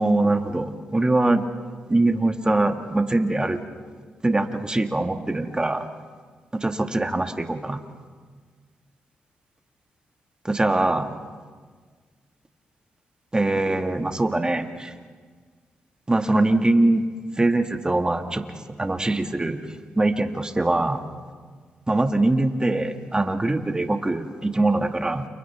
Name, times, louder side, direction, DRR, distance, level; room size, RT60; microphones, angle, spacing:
voice 1, 0.0-1.4 1.9-3.6 4.2-5.9 6.5-7.8 10.4-11.1 13.3-14.9 16.1-17.0 17.4-19.6 20.0-21.0 21.9-25.3, right 2 dB, 20° right, 5 dB, 1.8 m, -22 dB
29.5 x 29.5 x 3.5 m, 1.5 s
cardioid pair, 75°, 4 cm